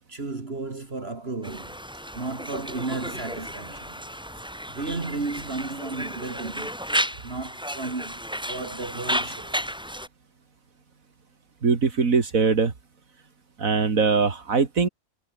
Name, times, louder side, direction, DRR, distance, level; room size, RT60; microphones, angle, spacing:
voice 1, 0.1-1.8 2.1-4.0 4.7-6.8 7.2-9.8, right 3 dB, 50° right, 2.6 m, -34 dB
Conversation, 1.4-10.1, equal, 5° right, 3.6 m, -33 dB
voice 2, 11.6-12.7 13.6-14.9, right 5 dB, 85° right, 2.6 m, -21 dB
omnidirectional pair, 1.4 m